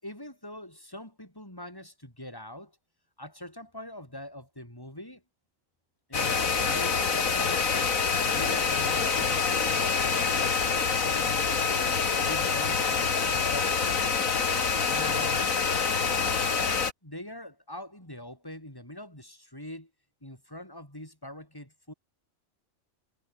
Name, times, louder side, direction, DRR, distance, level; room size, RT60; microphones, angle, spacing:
voice 1, 0.0-2.8 3.2-5.2 6.1-7.8 8.3-11.7 12.2-14.0 14.9-15.5 17.0-19.9 20.2-21.9, left 1 dB, 15° left, 7.1 m, -43 dB
sound 1, 6.1-16.9, left 5 dB, 90° left, 2.3 m, -26 dB
omnidirectional pair, 1.4 m